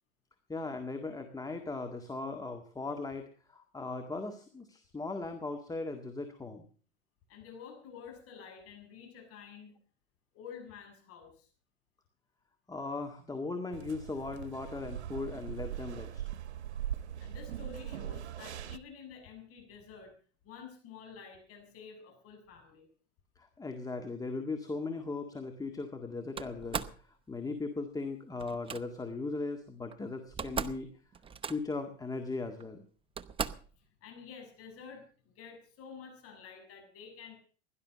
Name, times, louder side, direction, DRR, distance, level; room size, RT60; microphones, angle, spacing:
voice 1, 0.5-6.7 12.7-16.2 23.4-30.9 31.4-32.8, left 3 dB, 10° left, 6 dB, 1.8 m, -38 dB
voice 2, 7.3-9.7 10.3-11.5 17.2-20.1 20.4-22.9 33.8-37.3, left 6 dB, 45° left, 3 dB, 6.6 m, -50 dB
sound 1, 13.7-18.8, right 10 dB, 80° right, 1.0 m, -40 dB
Slam, 26.4-27.0 28.4-28.8 29.9-30.0 30.2-30.8 31.1-31.8 32.6-32.7 33.2-33.7, right 6 dB, 15° right, 0.8 m, -37 dB
16.5 x 11.5 x 6.5 m, 0.43 s
hypercardioid pair, 105°, 33 cm